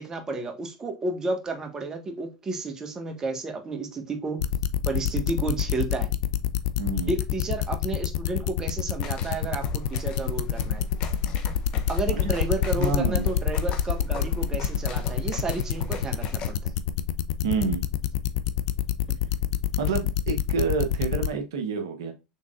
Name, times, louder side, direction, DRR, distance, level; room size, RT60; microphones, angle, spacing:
voice 1, 0.0-4.4 4.9-6.1 7.1-10.9 11.9-16.7, right 3 dB, 25° right, 1.4 m, -31 dB
sound 1, 4.4-21.3, left 10 dB, 70° left, 0.4 m, -26 dB
voice 2, 6.8-7.1 12.1-12.3 12.7-13.3 17.4-17.8 19.8-22.1, right 5 dB, 80° right, 0.9 m, -28 dB
sound 2, 9.0-16.5, left 5 dB, 50° left, 1.2 m, -40 dB
5.7 x 3.6 x 2.4 m
hypercardioid pair, 90°, 2 cm